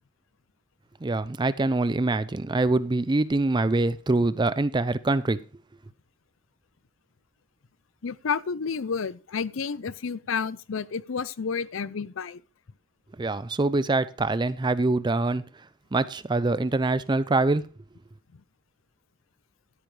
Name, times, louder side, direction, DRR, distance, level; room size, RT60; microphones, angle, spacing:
voice 1, 1.0-5.4 13.2-15.4 15.9-17.7, right 2 dB, 20° right, 0.4 m, -24 dB
voice 2, 8.0-12.4 18.3-18.4, left 6 dB, 70° left, 0.5 m, -30 dB
12.5 x 10.0 x 3.3 m
head